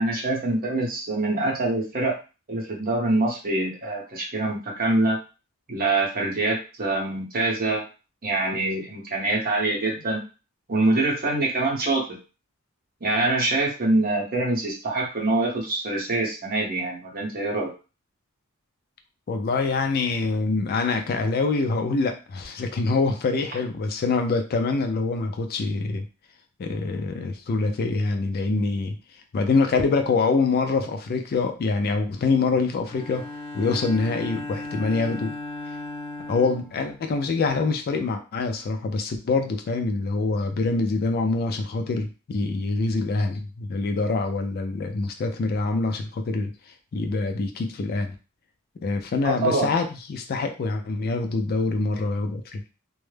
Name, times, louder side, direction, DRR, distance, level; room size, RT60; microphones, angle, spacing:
voice 1, 0.0-2.2 2.5-5.2 5.7-7.8 8.2-10.2 10.7-12.1 13.0-17.7 49.2-49.7, right 2 dB, 45° right, -1 dB, 0.8 m, -24 dB
voice 2, 19.3-26.0 26.6-29.0 29.3-33.2 33.5-35.4 36.3-46.5 46.9-48.1 48.8-52.7, left 3 dB, 45° left, 6 dB, 0.3 m, -25 dB
Bowed string instrument, 32.8-37.5, left 2 dB, 25° left, 1.0 m, -37 dB
2.2 x 2.0 x 3.1 m, 0.32 s
head